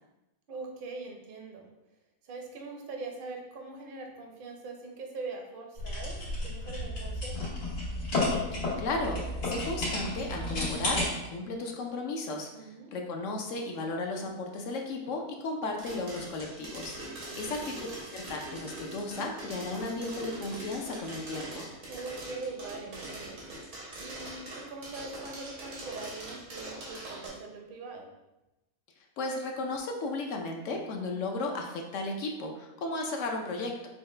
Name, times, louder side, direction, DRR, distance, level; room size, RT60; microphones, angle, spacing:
voice 1, 0.5-1.7 2.2-7.5 12.5-12.9 17.1-17.5 21.9-23.3 24.0-28.1, right 3 dB, 50° right, 2 dB, 0.7 m, -42 dB
sound 1, 5.8-11.1, left 2 dB, 85° left, 2.1 m, -32 dB
voice 2, 8.5-21.7 29.2-33.9, left 2 dB, 65° left, 2 dB, 0.9 m, -35 dB
sound 2, 15.8-27.3, right 1 dB, 90° right, 1.8 m, -42 dB
6.2 x 2.1 x 3.2 m, 0.97 s
omnidirectional pair, 1.6 m